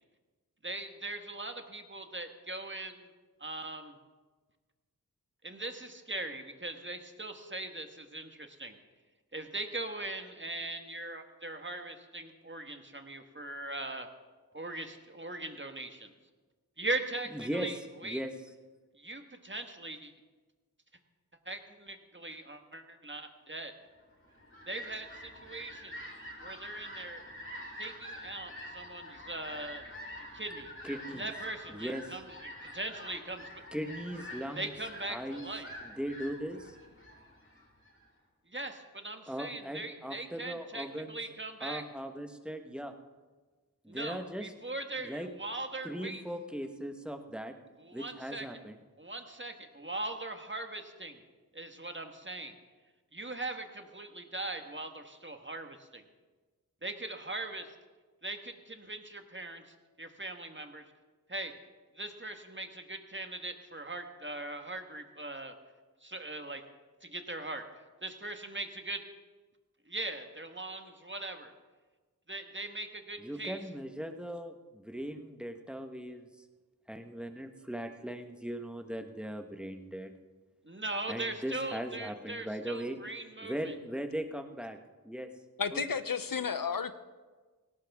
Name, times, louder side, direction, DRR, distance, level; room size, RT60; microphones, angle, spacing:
voice 1, 0.6-3.1 3.4-4.0 5.4-8.8 9.3-14.1 14.5-16.1 16.8-18.2 19.0-20.1 21.4-23.7 24.7-26.0 26.4-27.2 27.8-29.9 30.3-30.7 31.1-33.5 34.5-35.7 38.5-41.8 43.9-46.2 47.8-48.5 49.0-51.2 51.5-52.5 53.1-56.0 56.8-57.7 58.2-60.8 61.3-61.5 61.9-65.5 66.0-66.6 67.0-67.6 68.0-69.0 69.9-71.5 72.3-73.6 80.6-83.7, right 2 dB, 30° right, 6 dB, 1.5 m, -40 dB
voice 2, 17.3-17.7 18.0-18.3 30.8-31.3 31.7-32.0 33.7-34.7 35.1-35.5 35.8-36.7 39.3-41.2 41.6-42.9 43.8-44.5 45.0-45.3 45.8-47.5 47.9-48.8 73.2-76.3 76.9-80.1 81.1-83.0 83.4-84.8 85.0-85.3 85.7-85.9, equal, 5° right, 6 dB, 1.3 m, -39 dB
Fowl, 24.1-38.1, equal, 35° left, 4.0 m, -47 dB
voice 3, 85.6-87.0, left 6 dB, 70° left, 12 dB, 0.8 m, -32 dB
18.0 x 17.0 x 3.6 m, 1.3 s
wide cardioid pair, 50°, 36 cm